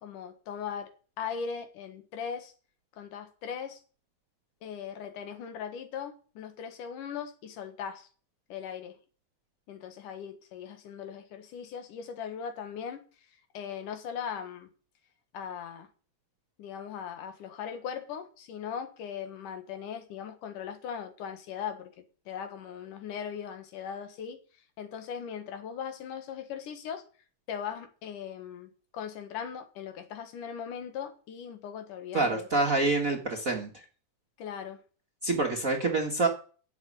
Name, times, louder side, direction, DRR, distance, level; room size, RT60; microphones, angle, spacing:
voice 1, 0.0-0.9 1.2-2.5 2.9-3.8 4.6-8.1 8.5-9.0 9.7-13.1 13.5-14.7 15.3-15.9 16.6-27.0 27.5-32.5 34.4-34.8, left 7 dB, 85° left, 3.1 m, -39 dB
voice 2, 32.1-33.7 35.2-36.3, right 3 dB, 40° right, 1.3 m, -26 dB
11.0 x 7.4 x 9.8 m
omnidirectional pair, 3.6 m